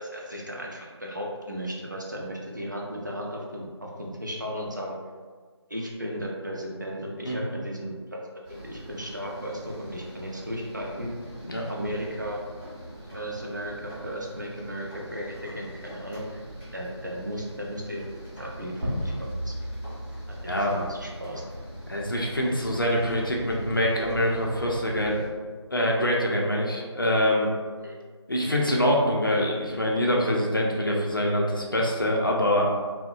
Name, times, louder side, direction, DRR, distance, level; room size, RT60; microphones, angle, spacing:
voice 1, 0.0-5.0 5.7-8.2 8.5-11.1 11.7-12.4 13.1-16.4 16.7-18.0 18.4-19.1 19.4-19.5 20.5-21.4 27.8-28.0, equal, 40° right, -2 dB, 0.4 m, -35 dB
sound 1, 8.4-25.3, equal, 15° left, 0.8 m, -42 dB
sound 2, 18.8-21.6, equal, 75° right, 0.7 m, -34 dB
voice 2, 20.4-20.7 21.9-25.2 25.7-27.5 28.3-32.7, equal, 45° left, -2 dB, 0.4 m, -25 dB
2.6 x 2.0 x 2.3 m, 1.5 s
figure-of-eight pair, 165°, 15 cm